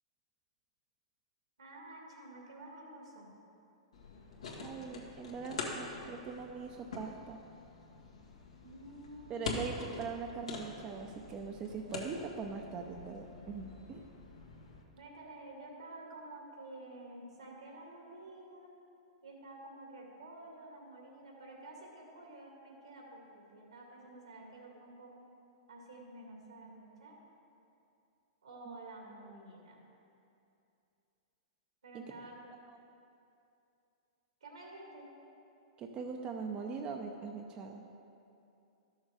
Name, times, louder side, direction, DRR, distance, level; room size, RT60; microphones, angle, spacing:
voice 1, 1.6-3.3 8.6-9.7 14.9-18.7 19.2-25.1 25.7-27.2 28.4-29.8 31.8-32.4 34.4-35.1, right 2 dB, 85° right, -1 dB, 2.5 m, -50 dB
sound 1, 3.9-14.8, left 3 dB, 85° left, 1.6 m, -45 dB
voice 2, 4.6-7.4 9.3-14.0 28.7-28.8 31.9-32.0 35.8-37.8, right 5 dB, 30° right, 3 dB, 0.7 m, -41 dB
12.5 x 6.5 x 4.9 m, 2.7 s
hypercardioid pair, 115°, 3 cm